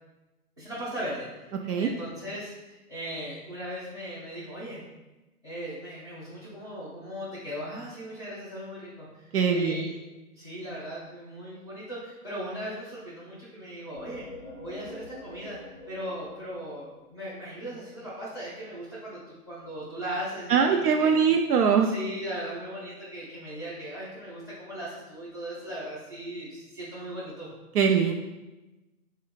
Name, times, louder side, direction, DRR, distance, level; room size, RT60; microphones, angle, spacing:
voice 1, 0.6-1.3 1.8-4.8 5.4-9.9 10.3-14.2 14.6-15.6 15.9-21.2 21.8-27.5, equal, 20° right, -13 dB, 0.5 m, -38 dB
voice 2, 9.3-9.9 20.5-21.9 27.7-28.1, right 6 dB, 80° right, 3 dB, 0.5 m, -22 dB
sound 1, 14.0-17.6, left 2 dB, 35° left, 0.5 m, -45 dB
3.8 x 2.1 x 3.9 m, 1.1 s
hypercardioid pair, 165°, 45 cm